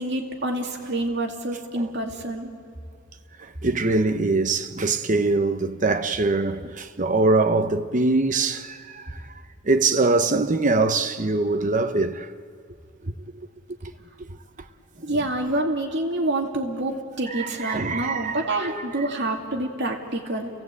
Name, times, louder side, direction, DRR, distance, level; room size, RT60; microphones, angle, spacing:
voice 1, 0.0-2.5 15.0-20.5, right 1 dB, 60° right, 2.4 m, -27 dB
voice 2, 3.4-9.2 9.6-12.3 13.0-13.1 13.8-13.9 14.2-14.3 17.3-18.8, right 3 dB, 40° right, 0.9 m, -23 dB
29.5 x 17.5 x 8.3 m
head